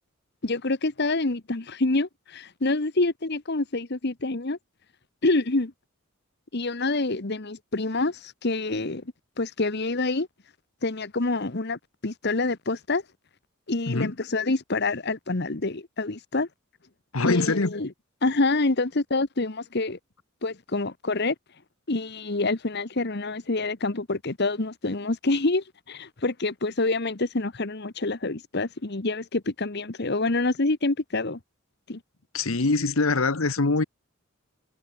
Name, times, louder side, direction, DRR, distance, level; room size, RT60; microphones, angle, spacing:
voice 1, 0.4-4.6 5.2-5.7 6.5-9.0 9.4-10.3 10.8-13.0 13.7-16.5 17.2-17.9 18.2-20.0 20.4-21.3 21.9-31.4 31.9-32.0, left 2 dB, 50° left, 1.3 m, -27 dB
voice 2, 17.1-17.7 32.3-33.8, left 3 dB, 75° left, 1.3 m, -23 dB
head